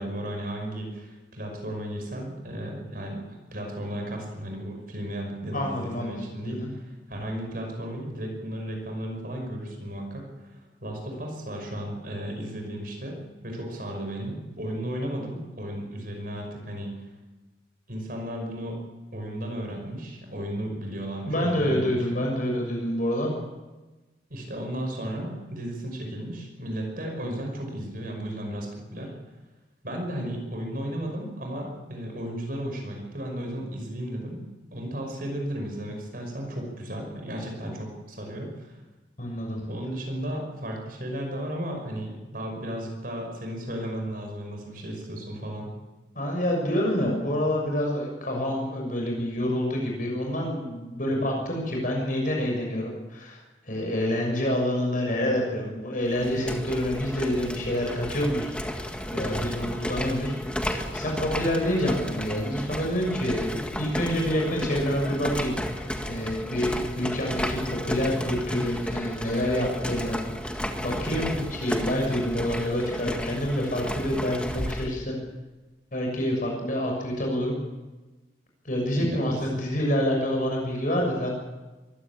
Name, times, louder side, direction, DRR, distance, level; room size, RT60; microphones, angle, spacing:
voice 1, 0.0-3.2 3.5-17.0 17.9-18.8 19.1-22.2 24.3-29.1 29.8-38.8 39.7-45.7 51.1-51.3 78.9-79.4, right 1 dB, 50° right, 2 dB, 5.6 m, -34 dB
voice 2, 5.5-6.2 6.4-6.7 21.3-23.3 39.2-39.6 46.1-53.4 53.6-60.4 60.7-70.2 70.8-75.1 75.9-77.6 78.6-81.3, equal, 45° left, 0 dB, 6.5 m, -27 dB
sound 1, 56.0-74.9, equal, 5° left, 1.7 m, -33 dB
23.0 x 16.0 x 8.7 m, 1.2 s
head